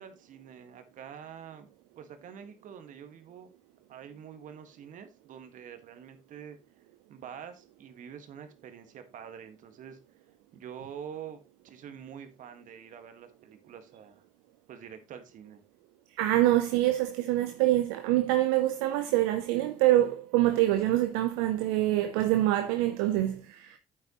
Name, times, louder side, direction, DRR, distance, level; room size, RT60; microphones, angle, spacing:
voice 1, 0.0-1.7 2.0-3.5 3.9-6.6 7.1-10.0 10.5-14.2 14.7-15.6, right 8 dB, 70° right, 1.8 m, -46 dB
voice 2, 16.1-23.8, right 15 dB, 85° right, 0.6 m, -25 dB
9.2 x 8.6 x 3.1 m
hypercardioid pair, 50°, 14 cm